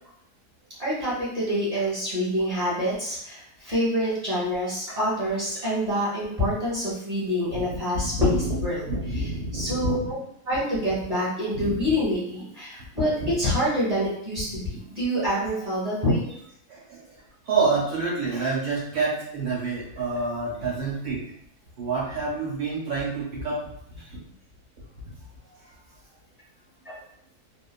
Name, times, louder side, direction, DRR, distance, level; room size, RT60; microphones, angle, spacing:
voice 1, 0.8-10.2 10.4-16.3 26.8-27.0, equal, 25° right, -10 dB, 1.3 m, -26 dB
voice 2, 8.0-8.6 8.8-10.1 11.5-11.7 13.2-13.3 16.7-17.0 17.5-21.2 21.8-23.6, right 3 dB, 70° right, -7 dB, 1.8 m, -27 dB
3.3 x 2.2 x 2.3 m, 0.71 s
omnidirectional pair, 1.7 m